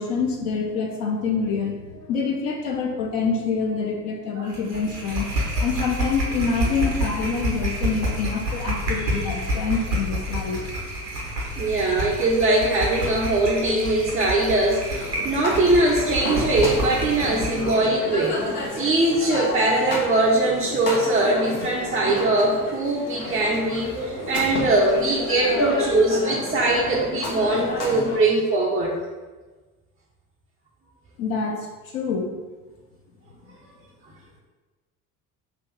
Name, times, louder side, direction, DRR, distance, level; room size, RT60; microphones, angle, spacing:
voice 1, 0.0-5.3 5.6-10.6 31.2-31.6 31.9-32.3, left 5 dB, 55° left, 0 dB, 0.7 m, -26 dB
sound 1, 4.5-17.9, equal, 90° right, 0.8 m, -28 dB
voice 2, 11.6-18.4 18.7-28.9, right 2 dB, 15° right, -5 dB, 0.5 m, -21 dB
sound 2, 14.9-28.2, left 1 dB, 70° left, 1.0 m, -30 dB
3.6 x 2.5 x 4.5 m, 1.3 s
figure-of-eight pair, 55°, 47 cm